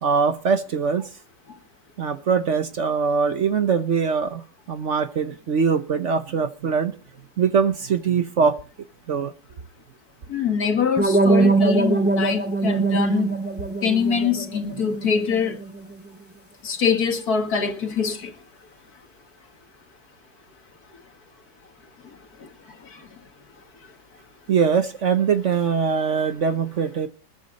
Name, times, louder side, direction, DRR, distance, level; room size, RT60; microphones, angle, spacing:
voice 1, 0.0-1.1 2.0-4.4 4.7-6.9 7.4-8.6 9.1-9.3 24.5-27.1, right 6 dB, 55° right, 1.0 m, -22 dB
voice 2, 10.3-13.4 13.8-15.6 16.6-18.3, left 6 dB, 60° left, 2.4 m, -24 dB
sound 1, 11.0-15.9, right 3 dB, 5° right, 2.3 m, -22 dB
20.5 x 9.6 x 4.0 m
omnidirectional pair, 1.9 m